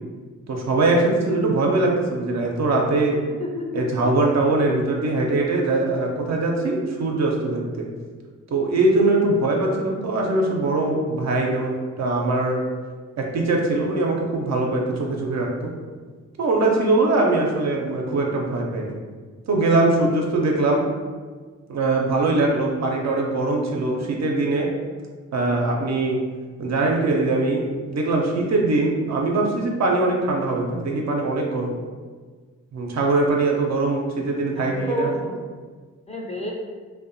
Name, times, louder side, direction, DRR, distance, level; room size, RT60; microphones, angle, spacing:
voice 1, 0.5-3.2 3.7-7.9 8.5-12.6 13.2-15.7 16.4-19.0 19.5-20.8 21.7-24.7 25.3-26.2 26.6-31.8 32.7-35.1, right 2 dB, 50° right, 0 dB, 0.5 m, -22 dB
voice 2, 3.4-4.0 34.5-35.4 36.1-36.5, equal, 20° left, -2 dB, 0.6 m, -29 dB
2.6 x 2.1 x 2.5 m, 1.5 s
supercardioid pair, 40°, 34 cm